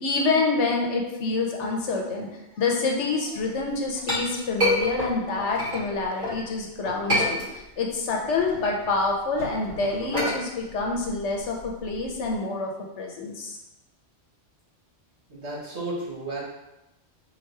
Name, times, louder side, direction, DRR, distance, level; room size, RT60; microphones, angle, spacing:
voice 1, 0.0-12.7 13.0-13.6, left 3 dB, 85° left, 0 dB, 1.1 m, -27 dB
Chink clink, 3.6-6.4 6.8-7.9 8.2-12.3, left 1 dB, 45° right, 1.8 m, -29 dB
voice 2, 15.3-16.4, right 2 dB, 70° right, -5 dB, 1.7 m, -33 dB
3.8 x 3.0 x 4.6 m, 0.95 s
omnidirectional pair, 1.2 m